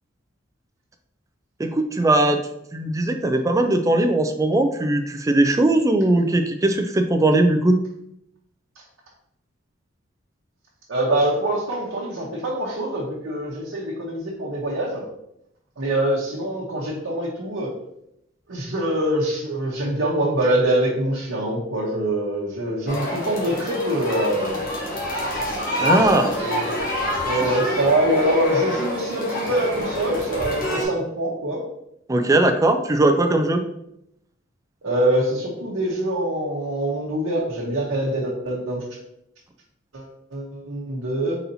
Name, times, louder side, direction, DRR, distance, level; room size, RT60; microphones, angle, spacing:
voice 1, 1.6-2.4 2.7-7.8 25.8-26.3 32.1-33.6, right 2 dB, 15° right, 6 dB, 0.3 m, -19 dB
voice 2, 10.9-15.1 15.8-17.7 18.5-24.6 25.8-26.7 27.2-31.6 34.8-38.8 39.9-41.4, right 1 dB, 90° right, -6 dB, 0.9 m, -24 dB
sound 1, 22.9-30.9, left 1 dB, 45° left, 1.1 m, -27 dB
4.1 x 4.0 x 2.7 m, 0.78 s
head